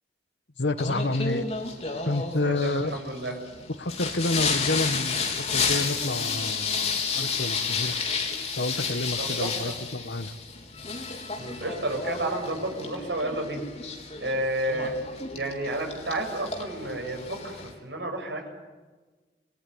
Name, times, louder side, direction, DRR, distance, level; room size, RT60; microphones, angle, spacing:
voice 1, 0.6-1.4 2.0-3.0 3.7-8.0 8.6-10.3, left 2 dB, 85° left, 11 dB, 1.5 m, -29 dB
Singing, 0.8-17.7, left 5 dB, 35° left, 4.0 m, -31 dB
voice 2, 2.4-3.4 9.2-9.5 11.4-13.6 14.2-15.0 15.3-18.5, right 1 dB, 80° right, 3 dB, 7.8 m, -31 dB
29.0 x 20.5 x 9.7 m, 1.3 s
head